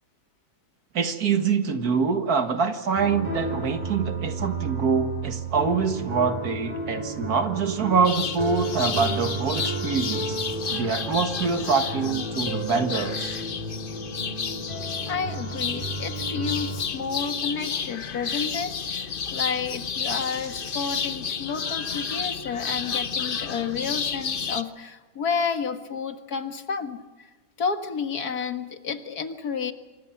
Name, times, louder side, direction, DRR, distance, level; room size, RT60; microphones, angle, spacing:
voice 1, 0.9-10.4 10.7-13.4, right 5 dB, 80° right, 7 dB, 2.1 m, -25 dB
sound 1, 3.0-16.8, right 2 dB, 35° right, 6.5 m, -33 dB
sound 2, 8.0-24.6, left 6 dB, 40° left, 1.0 m, -31 dB
voice 2, 15.1-27.3 27.6-29.7, left 6 dB, 85° left, 7 dB, 2.3 m, -31 dB
27.5 x 24.5 x 5.9 m, 1.2 s
omnidirectional pair, 1.6 m